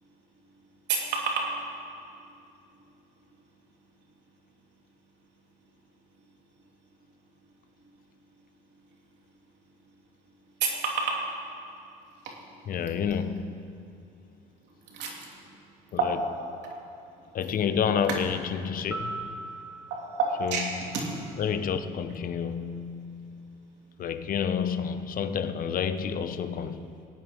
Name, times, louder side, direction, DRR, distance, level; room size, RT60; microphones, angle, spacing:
voice 1, 0.9-1.5 10.6-11.2 12.2-12.3 14.9-15.1 16.0-16.1 19.9-20.7 20.9-21.0, right 4 dB, 70° right, -1 dB, 3.0 m, -28 dB
voice 2, 12.7-13.8 15.9-16.2 17.3-19.4 20.4-21.0 21.4-23.4 24.0-26.9, left 7 dB, 50° left, 11 dB, 0.9 m, -30 dB
sound 1, 18.9-21.4, right 3 dB, 5° right, 1.4 m, -40 dB
20.0 x 8.8 x 5.3 m, 2.6 s
supercardioid pair, 85°, 19 cm